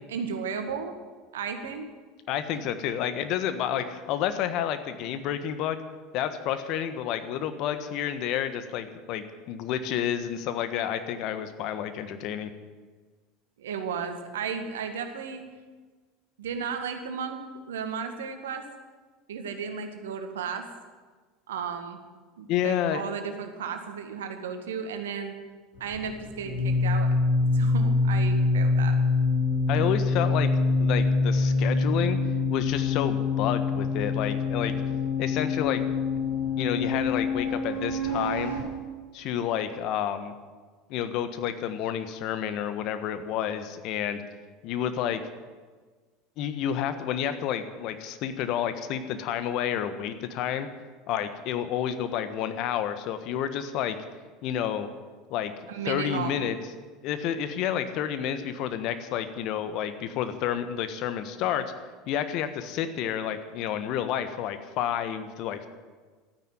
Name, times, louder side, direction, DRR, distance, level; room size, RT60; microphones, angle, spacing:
voice 1, 0.1-0.9 1.3-1.8 2.5-2.8 13.6-15.5 16.4-17.4 17.7-18.6 19.3-20.7 21.5-22.0 22.4-25.4 25.8-27.1 27.5-29.0 55.7-56.3, right 6 dB, 75° right, 6 dB, 1.8 m, -34 dB
voice 2, 2.3-5.8 6.1-12.5 22.5-23.1 29.7-30.5 30.8-32.2 32.5-34.7 35.2-35.8 36.6-38.5 39.1-40.3 40.9-44.2 44.6-45.2 46.4-50.7 51.1-54.0 54.4-54.9 55.3-55.5 55.8-56.6 57.0-61.6 62.1-65.7, left 10 dB, 55° left, 10 dB, 1.4 m, -30 dB
sound 1, 25.7-38.6, left 3 dB, 85° left, 5.4 m, -25 dB
13.5 x 9.7 x 9.4 m, 1.4 s
hypercardioid pair, 75°, 0 cm